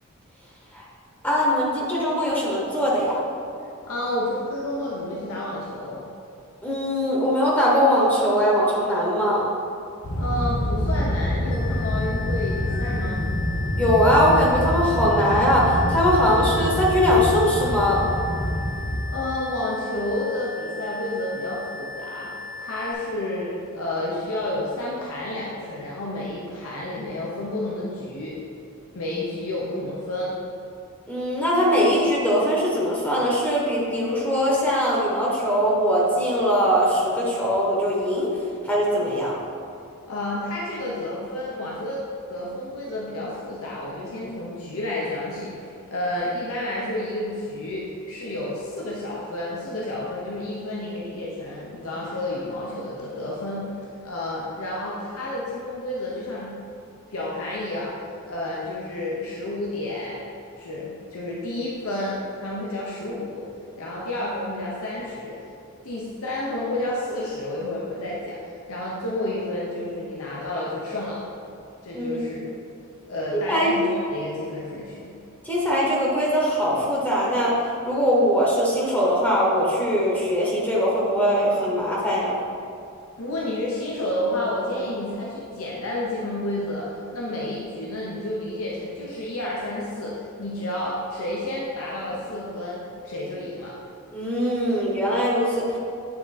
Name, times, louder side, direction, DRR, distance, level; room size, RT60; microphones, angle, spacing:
voice 1, 1.2-3.1 6.6-9.4 13.8-18.0 31.1-38.3 38.6-39.4 71.9-72.4 73.5-74.0 75.4-77.5 77.8-82.3 94.1-95.8, equal, 10° left, -5 dB, 0.9 m, -21 dB
voice 2, 3.9-6.0 10.2-13.2 19.1-22.3 22.6-28.3 28.9-30.3 40.1-42.0 42.3-53.7 54.0-56.5 57.1-57.9 58.3-60.2 60.6-63.4 63.8-65.3 65.8-68.4 68.7-71.2 71.8-72.5 73.1-75.1 83.2-93.7, left 1 dB, 70° left, -5 dB, 0.8 m, -30 dB
sound 1, 10.0-19.0, left 1 dB, 85° left, 1.1 m, -26 dB
sound 2, 11.5-22.9, left 5 dB, 35° left, 0.8 m, -37 dB
8.6 x 3.7 x 4.1 m, 2.6 s
head